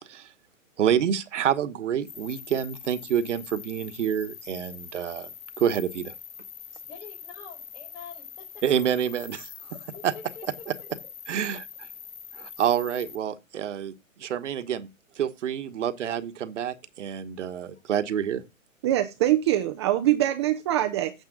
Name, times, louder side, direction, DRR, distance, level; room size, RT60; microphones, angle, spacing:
voice 1, 0.0-0.3 0.8-6.1 8.6-9.8 10.0-10.1 10.7-10.8 11.3-11.7 12.3-14.9 15.1-18.4, right 9 dB, 60° right, 1.2 m, -28 dB
sound 1, 2.0-13.2, left 7 dB, 80° left, 1.5 m, -44 dB
voice 2, 6.8-8.6 9.7-10.5, left 6 dB, 60° left, 5.3 m, -46 dB
voice 3, 18.8-21.1, right 13 dB, 20° right, 0.5 m, -23 dB
9.3 x 7.4 x 3.8 m
hypercardioid pair, 140°, 41 cm